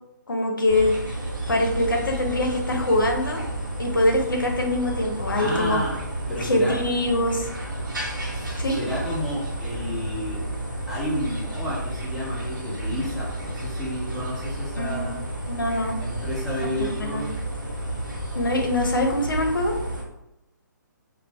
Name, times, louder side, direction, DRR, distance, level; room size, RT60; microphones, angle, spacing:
voice 1, 0.3-0.9 1.5-3.4 3.8-5.8 6.4-7.5 8.6-8.8 14.8-15.1 15.5-16.0 17.0-17.3 18.3-19.7, left 1 dB, 85° left, 1 dB, 0.6 m, -23 dB
sound 1, 0.7-20.0, right 1 dB, 80° right, 1.0 m, -31 dB
voice 2, 5.3-6.0 6.3-6.8 8.3-10.4 10.9-15.3 16.0-17.3, left 1 dB, ahead, -9 dB, 0.7 m, -31 dB
2.2 x 2.0 x 3.3 m, 0.90 s
hypercardioid pair, 145°, 11 cm